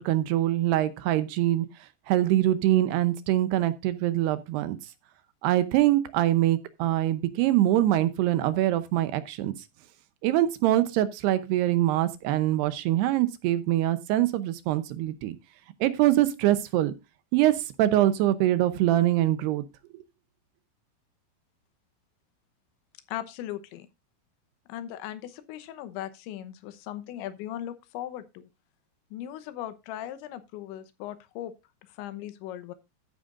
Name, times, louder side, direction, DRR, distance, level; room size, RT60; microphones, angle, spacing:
voice 1, 0.0-1.7 2.1-4.8 5.4-9.5 10.2-15.4 15.8-16.9 17.3-19.6, right 14 dB, 75° right, 2.7 m, -24 dB
voice 2, 23.1-23.9 24.7-28.5 29.1-31.5 32.0-32.7, left 12 dB, 85° left, 3.3 m, -38 dB
14.0 x 9.1 x 2.5 m
omnidirectional pair, 5.1 m